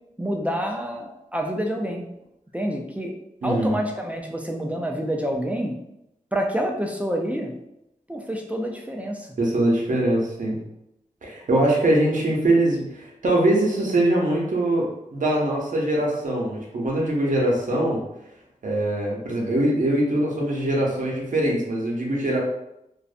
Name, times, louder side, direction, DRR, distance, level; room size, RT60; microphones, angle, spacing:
voice 1, 0.2-2.0 2.5-3.1 3.4-5.8 6.3-7.5 8.1-9.3, equal, 10° right, 1 dB, 0.3 m, -27 dB
voice 2, 3.4-3.8 9.4-10.6 11.2-18.0 18.6-22.4, right 1 dB, 65° right, -2 dB, 0.7 m, -22 dB
2.5 x 2.0 x 2.4 m, 0.84 s
wide cardioid pair, 75°, 14 cm